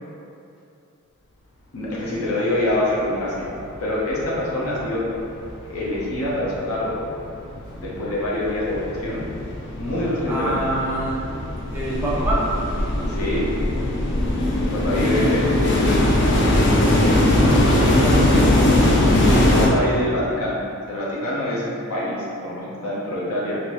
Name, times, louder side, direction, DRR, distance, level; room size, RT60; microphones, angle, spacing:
voice 1, 1.7-3.5 3.8-5.0 5.6-7.0 7.8-9.3 9.8-10.6 13.1-13.5 14.6-15.5 19.4-20.6 20.9-23.6, left 1 dB, 75° left, -6 dB, 0.8 m, -25 dB
sound 1, 3.0-3.1 3.4-4.4 4.7-19.7, left 1 dB, 55° left, 0.5 m, -20 dB
voice 2, 10.3-11.1 11.7-12.4 14.9-16.0 17.2-19.2, right 1 dB, 10° right, -7 dB, 0.6 m, -26 dB
3.4 x 2.6 x 3.0 m, 2.6 s
head